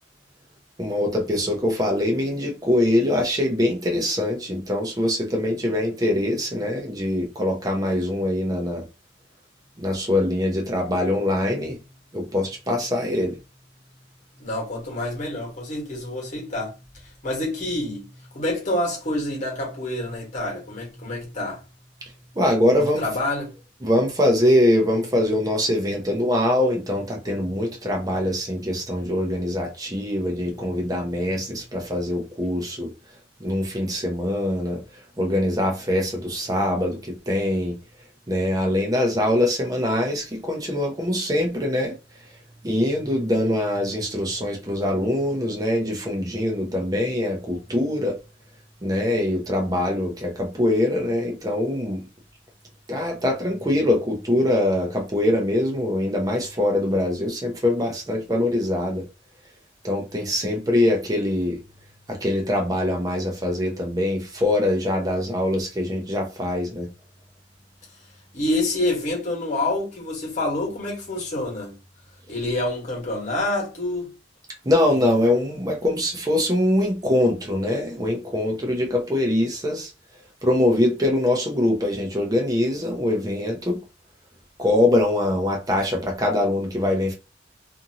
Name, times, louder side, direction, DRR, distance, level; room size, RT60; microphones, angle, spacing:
voice 1, 0.8-8.8 9.8-11.8 12.1-13.4 22.4-23.1 23.8-32.9 33.4-34.8 35.2-37.8 38.3-41.9 42.6-48.2 48.8-52.0 52.9-59.1 59.8-61.6 62.1-66.9 74.6-79.9 80.4-83.8 84.6-87.1, left 1 dB, 20° right, 0.7 m, -23 dB
voice 2, 14.4-16.7 17.2-18.1 18.3-21.6 22.7-23.5 68.3-71.7 72.3-74.1, left 1 dB, 40° left, 1.3 m, -27 dB
2.6 x 2.6 x 2.7 m
head